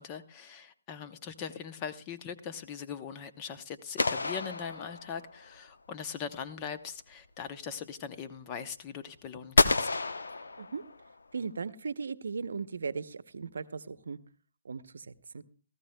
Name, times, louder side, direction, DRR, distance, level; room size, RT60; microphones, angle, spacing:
voice 1, 0.0-9.9, left 7 dB, 25° left, 0.7 m, -41 dB
sound 1, 4.0-5.4 9.6-11.1, left 3 dB, 85° left, 0.8 m, -29 dB
voice 2, 11.3-14.2 14.6-15.4, right 5 dB, 75° right, 0.8 m, -37 dB
18.0 x 14.0 x 2.2 m
hypercardioid pair, 155°, 0 cm